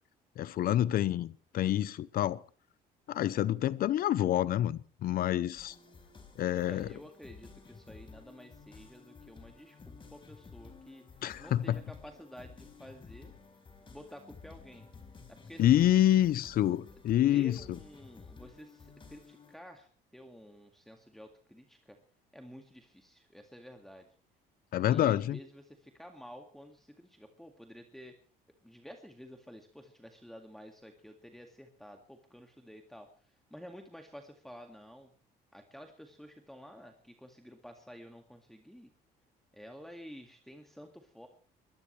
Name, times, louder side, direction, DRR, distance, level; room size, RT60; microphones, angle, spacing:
voice 1, 0.4-2.4 3.1-5.7 6.4-6.9 11.2-11.8 15.6-17.6 24.7-25.4, left 12 dB, 60° left, 0.7 m, -27 dB
sound 1, 5.5-19.6, left 4 dB, 30° left, 4.5 m, -53 dB
voice 2, 6.7-11.0 11.4-13.3 13.9-14.9 15.3-15.9 16.9-17.0 17.3-22.0 22.3-24.1 24.8-28.2 28.6-35.1 35.5-38.9 39.5-41.3, equal, ahead, 2.1 m, -51 dB
22.5 x 18.0 x 3.3 m
cardioid pair, 110°, 17 cm